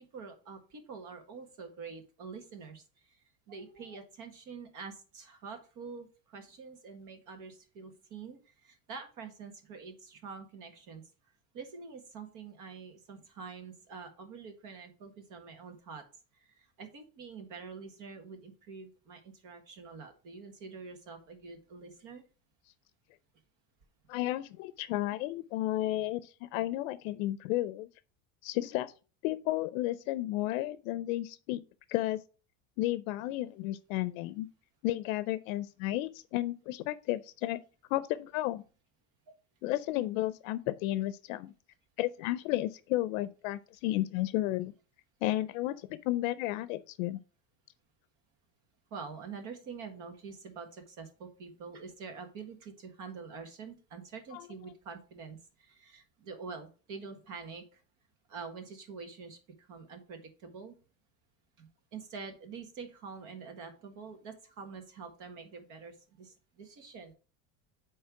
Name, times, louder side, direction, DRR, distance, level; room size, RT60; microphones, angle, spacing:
voice 1, 0.0-3.2 3.5-11.0 11.5-16.0 16.3-22.2 48.9-57.8 58.3-60.7 61.6-67.1, right 5 dB, 50° right, 1.7 m, -46 dB
voice 2, 24.1-27.9 28.4-28.9 29.2-31.6 31.9-32.2 32.8-34.5 34.8-37.6 37.9-38.6 39.6-41.5 42.0-44.7 45.2-47.2 54.3-54.4, left 16 dB, 80° left, 0.6 m, -32 dB
8.8 x 3.3 x 4.8 m
cardioid pair, 150°, 40 cm